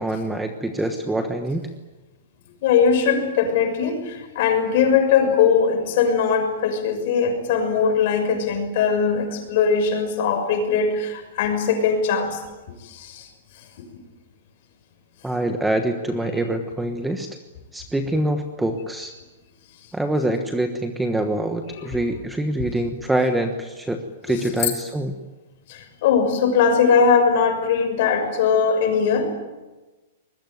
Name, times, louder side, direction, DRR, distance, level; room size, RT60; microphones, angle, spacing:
voice 1, 0.0-1.6 15.2-17.3 17.7-19.1 19.9-25.1, right 1 dB, 5° right, 6 dB, 1.2 m, -25 dB
voice 2, 2.6-12.4 12.8-13.3 13.8-13.9 21.8-22.0 24.3-24.7 25.7-29.3, left 6 dB, 40° left, 6 dB, 6.3 m, -20 dB
24.0 x 21.5 x 9.3 m, 1.1 s
supercardioid pair, 175°, 0 cm